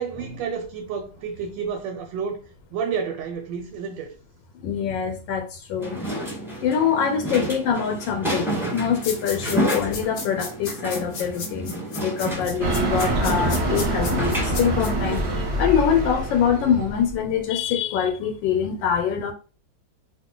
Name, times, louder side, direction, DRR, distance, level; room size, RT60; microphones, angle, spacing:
voice 1, 0.0-2.4 2.7-4.1 9.3-9.7, right 6 dB, 85° right, 1.3 m, -30 dB
voice 2, 4.6-6.0 6.6-11.7 12.0-19.3, left 7 dB, 90° left, 1.3 m, -24 dB
sound 1, 5.8-15.5, right 1 dB, 5° right, 0.4 m, -31 dB
sound 2, 9.0-14.9, left 5 dB, 60° left, 0.9 m, -34 dB
sound 3, 12.6-17.1, right 1 dB, 50° right, 0.8 m, -25 dB
2.8 x 2.4 x 3.6 m
omnidirectional pair, 2.0 m